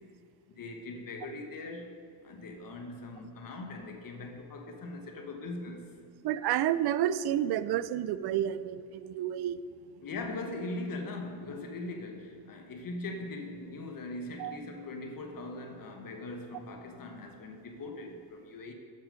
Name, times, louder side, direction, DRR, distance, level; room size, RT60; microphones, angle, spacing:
voice 1, 0.5-1.9 2.2-5.9 10.0-18.7, left 2 dB, 50° left, 4 dB, 1.3 m, -40 dB
voice 2, 6.2-9.6 14.4-14.6, right 11 dB, 60° right, 15 dB, 0.5 m, -30 dB
8.5 x 7.4 x 5.2 m, 2.6 s
cardioid pair, 80°, 43 cm